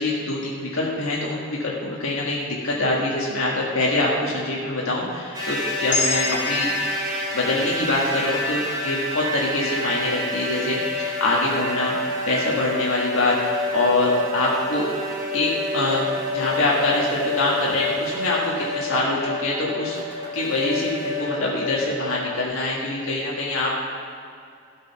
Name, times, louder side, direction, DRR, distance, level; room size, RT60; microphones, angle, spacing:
voice 1, 0.0-6.7 7.3-14.9 15.3-16.0 16.3-23.8, left 2 dB, 80° left, -4 dB, 1.6 m, -24 dB
sound 1, 5.3-22.4, left 1 dB, 20° right, 2.5 m, -28 dB
sound 2, 5.9-10.2, left 3 dB, 55° left, 2.8 m, -31 dB
13.5 x 5.2 x 5.8 m, 2.3 s
head